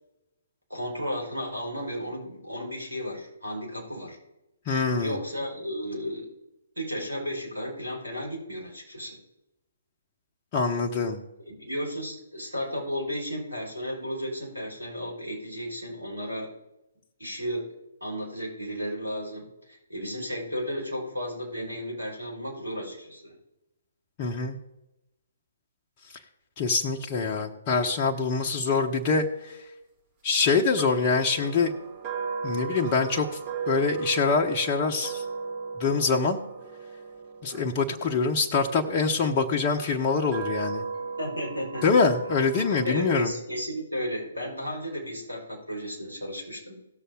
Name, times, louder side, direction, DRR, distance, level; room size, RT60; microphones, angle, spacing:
voice 1, 0.7-4.2 5.0-6.3 6.8-9.2 11.5-16.5 17.2-17.7 18.0-23.3 41.2-41.9 42.8-46.8, equal, 85° right, -2 dB, 5.0 m, -34 dB
voice 2, 4.7-5.2 10.5-11.2 24.2-24.6 26.6-29.6 30.2-31.7 32.4-33.4 33.7-35.2 35.8-36.4 37.4-40.8 41.8-43.3, left 4 dB, 30° left, 1 dB, 0.9 m, -25 dB
sound 1, 30.7-38.9 39.6-43.1, right 5 dB, 30° right, 2.4 m, -36 dB
17.5 x 6.9 x 3.8 m, 0.94 s
figure-of-eight pair, 130°, 0 cm